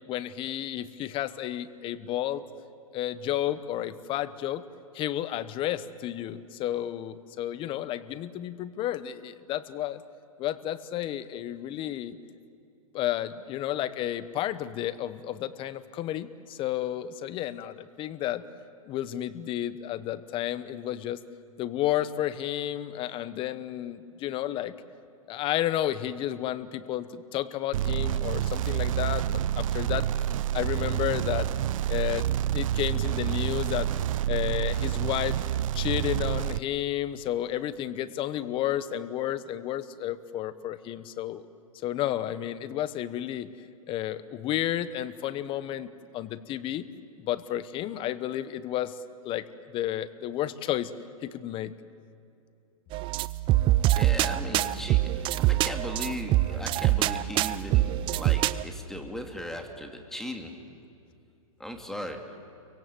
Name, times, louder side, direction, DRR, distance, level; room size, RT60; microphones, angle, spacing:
voice 1, 0.1-2.4 2.9-4.6 4.9-10.0 10.4-12.2 12.9-18.4 18.9-21.2 21.6-24.7 25.3-30.1 30.5-31.5 31.9-33.9 34.3-35.4 35.7-41.4 41.8-43.5 43.9-46.9 47.2-49.0 49.2-50.9 51.2-51.7, left 12 dB, 30° left, 15 dB, 1.1 m, -31 dB
sound 1, 27.7-36.6, right 11 dB, 65° right, 0.5 m, -28 dB
sound 2, 52.9-58.6, right 15 dB, 30° right, 0.6 m, -25 dB
voice 2, 53.9-60.5 61.6-62.2, equal, ahead, 4 dB, 2.6 m, -38 dB
30.0 x 24.0 x 7.8 m, 2.6 s
hypercardioid pair, 135°, 18 cm